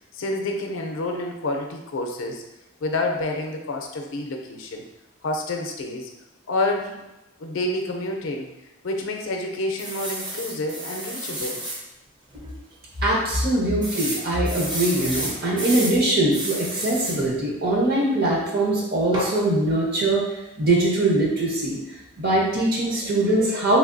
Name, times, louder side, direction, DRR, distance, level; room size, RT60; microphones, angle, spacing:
voice 1, 0.1-2.4 2.8-4.8 5.2-6.1 6.5-7.0 7.4-8.5 8.8-11.6, left 2 dB, 75° left, 2 dB, 0.5 m, -28 dB
sound 1, 9.8-11.8 12.3-12.4 12.7-12.8 13.8-16.0 16.3-17.2 19.1-19.4, right 1 dB, 20° right, 0.5 m, -31 dB
voice 2, 13.0-20.2 20.6-21.8 22.2-23.8, right 1 dB, 50° right, -4 dB, 0.8 m, -22 dB
3.3 x 2.7 x 2.6 m, 0.98 s
head